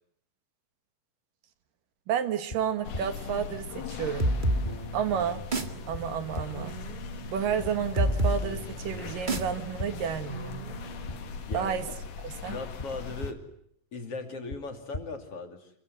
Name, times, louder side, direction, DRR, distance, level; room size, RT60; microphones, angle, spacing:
voice 1, 2.1-4.3 4.9-5.4 5.9-6.8 7.3-10.6 11.5-11.9 12.2-12.6, right 8 dB, 80° right, 10 dB, 3.3 m, -31 dB
sound 1, 2.5-2.6 2.9-3.0 4.2-4.3 4.6-4.7 5.9-6.0 6.4-6.5 7.6-7.7 8.1-8.2 9.4-9.5 9.8-9.9 11.1-11.2 11.5-11.6 12.8-12.9 13.2-13.3 14.5-14.6 14.9-15.0, left 1 dB, 20° left, 1.3 m, -35 dB
sound 2, 2.8-13.3, left 5 dB, 70° left, 3.4 m, -40 dB
sound 3, 4.2-11.6, right 1 dB, 25° right, 1.1 m, -32 dB
voice 2, 12.5-13.4 13.9-15.7, left 3 dB, 45° left, 5 dB, 3.5 m, -38 dB
27.5 x 23.0 x 9.5 m, 0.69 s
omnidirectional pair, 3.9 m